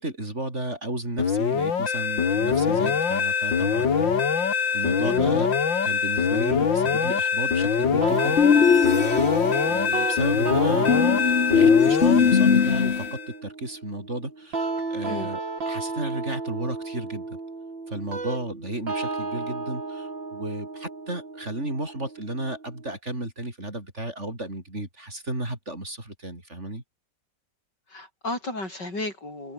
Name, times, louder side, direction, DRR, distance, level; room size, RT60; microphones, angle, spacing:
voice 1, 0.0-5.5 5.8-8.8 9.7-17.4 17.9-26.8, right 1 dB, 35° right, 6.1 m, -33 dB
sound 1, 1.2-13.3, left 6 dB, 90° left, 2.9 m, -24 dB
sound 2, 8.0-23.0, right 3 dB, 85° right, 5.6 m, -33 dB
sound 3, 8.4-9.6 10.9-13.1, left 6 dB, 40° left, 1.2 m, -19 dB
voice 2, 27.9-29.5, left 2 dB, 65° left, 8.4 m, -34 dB
omnidirectional pair, 2.0 m